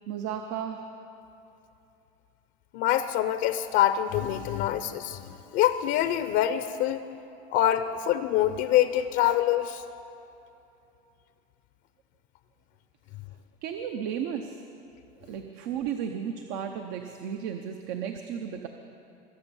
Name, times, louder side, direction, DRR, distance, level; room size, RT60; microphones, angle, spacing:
voice 1, 0.1-0.8 13.6-14.6 15.2-18.7, right 8 dB, 75° right, 5 dB, 1.0 m, -34 dB
voice 2, 2.7-7.0 7.5-9.8, left 12 dB, 65° left, 11 dB, 0.7 m, -25 dB
23.5 x 8.3 x 7.1 m, 2.8 s
cardioid pair, 145°, 20 cm